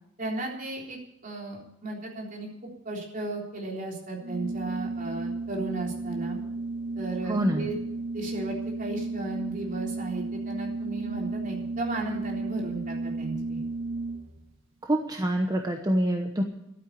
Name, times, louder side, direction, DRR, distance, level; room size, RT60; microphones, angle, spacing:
voice 1, 0.2-2.5 2.8-6.4 7.0-7.8 8.1-13.6, right 2 dB, 45° right, -1 dB, 3.7 m, -35 dB
Organ, 4.2-14.4, right 3 dB, 80° right, 2.0 m, -33 dB
voice 2, 7.3-7.7 14.8-16.4, right 1 dB, 20° right, 3 dB, 1.0 m, -26 dB
13.0 x 8.9 x 9.3 m, 0.81 s
head